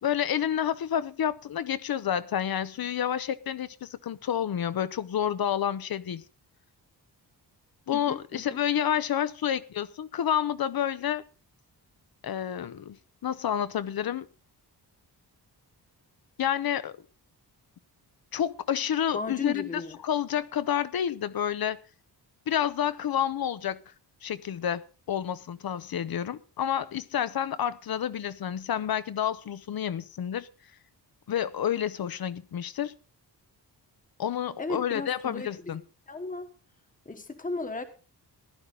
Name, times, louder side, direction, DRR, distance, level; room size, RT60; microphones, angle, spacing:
voice 1, 0.0-6.2 7.9-11.2 12.2-13.0 13.2-14.3 16.4-17.0 18.3-21.8 22.5-23.8 24.2-30.5 31.3-32.9 34.2-35.8, left 9 dB, 60° left, 0.8 m, -29 dB
voice 2, 7.9-8.6 19.1-20.0 34.6-35.8 36.1-36.5 37.0-37.8, left 3 dB, 20° left, 1.3 m, -35 dB
15.5 x 12.0 x 3.8 m
wide cardioid pair, 155°, 42 cm